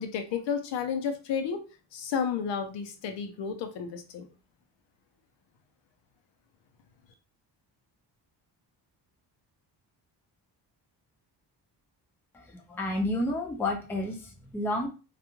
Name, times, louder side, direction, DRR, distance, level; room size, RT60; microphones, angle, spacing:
voice 1, 0.0-1.6 1.9-4.3, left 6 dB, 85° left, 7 dB, 0.7 m, -32 dB
voice 2, 12.3-14.9, left 1 dB, 5° left, 1 dB, 0.3 m, -31 dB
2.4 x 2.2 x 3.0 m, 0.33 s
cardioid pair, 155°, 42 cm